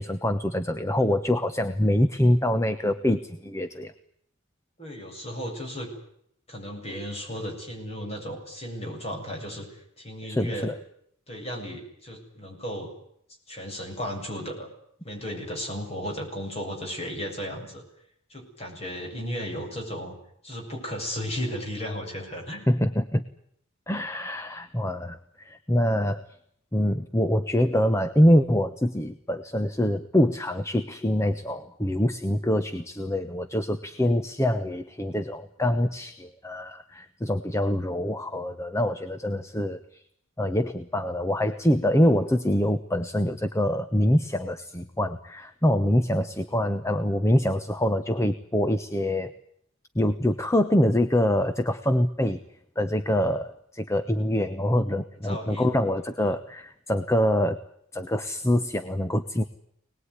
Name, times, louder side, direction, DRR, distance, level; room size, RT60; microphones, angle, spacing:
voice 1, 0.0-3.9 10.2-10.7 22.7-23.2 23.9-26.3 26.7-40.0 40.4-49.3 49.9-52.4 52.8-57.6 57.9-59.4, left 1 dB, 15° left, 9 dB, 1.0 m, -25 dB
voice 2, 4.8-5.9 6.5-10.7 11.3-12.9 13.5-14.7 15.0-17.8 18.3-20.1 20.4-22.6 55.2-55.8, equal, 30° left, 1 dB, 7.8 m, -35 dB
25.5 x 20.0 x 9.8 m, 0.71 s
head